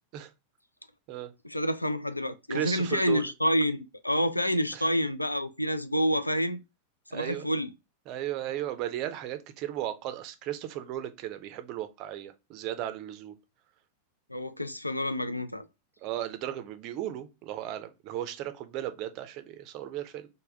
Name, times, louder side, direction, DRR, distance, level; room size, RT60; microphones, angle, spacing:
voice 1, 1.4-6.6 7.1-7.7 14.3-15.7, equal, 85° left, 0.3 m, -28 dB
voice 2, 2.5-3.3 4.7-4.9 7.1-7.5 8.1-13.4 16.0-20.3, right 12 dB, 40° right, 0.5 m, -35 dB
3.4 x 2.2 x 3.4 m
figure-of-eight pair, 90°, 0 cm